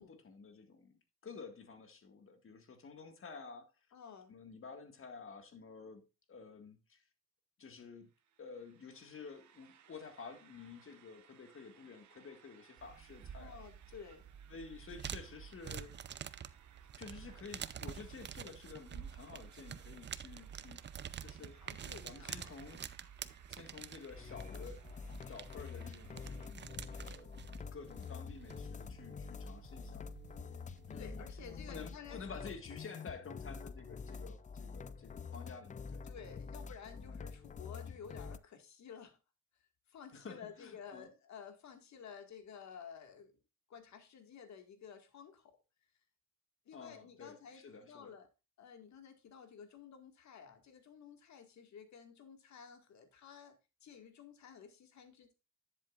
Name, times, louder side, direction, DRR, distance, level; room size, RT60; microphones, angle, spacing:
voice 1, 0.0-3.7 4.3-7.0 7.6-8.1 8.4-13.6 14.5-16.0 17.0-20.8 21.2-21.6 22.0-22.8 23.5-24.9 25.3-26.6 26.9-27.4 27.7-30.1 30.9-31.3 31.7-36.1 37.0-37.1 40.1-41.1 46.7-48.1, left 5 dB, 45° left, 1.8 m, -51 dB
voice 2, 3.9-4.3 13.4-14.3 21.4-22.6 30.5-30.6 30.9-32.5 36.0-39.2 39.9-43.4 43.7-45.6 46.7-48.3 48.6-55.3, left 7 dB, 65° left, 2.0 m, -53 dB
sound 1, 8.0-26.5, right 9 dB, 70° right, 1.5 m, -65 dB
sound 2, 12.8-31.8, right 8 dB, 35° right, 0.6 m, -49 dB
sound 3, 24.1-38.4, left 5 dB, 25° left, 0.4 m, -47 dB
10.5 x 7.7 x 2.5 m
cardioid pair, 90°, 30 cm